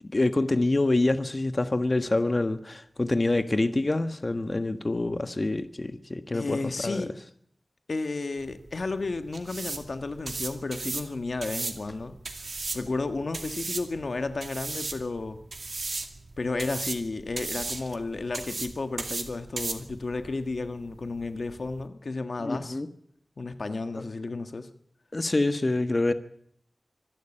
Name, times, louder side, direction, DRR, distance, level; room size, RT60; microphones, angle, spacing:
voice 1, 0.1-7.0 22.4-22.9 23.9-24.0 25.1-26.1, left 2 dB, 45° left, 1.4 m, -26 dB
voice 2, 6.3-7.1 7.9-12.1 12.7-15.4 16.4-22.8 23.4-24.7, left 3 dB, 75° left, 1.4 m, -32 dB
sound 1, 8.4-21.9, right 3 dB, 75° right, 2.4 m, -37 dB
25.0 x 11.5 x 8.9 m
wide cardioid pair, 55°, 0 cm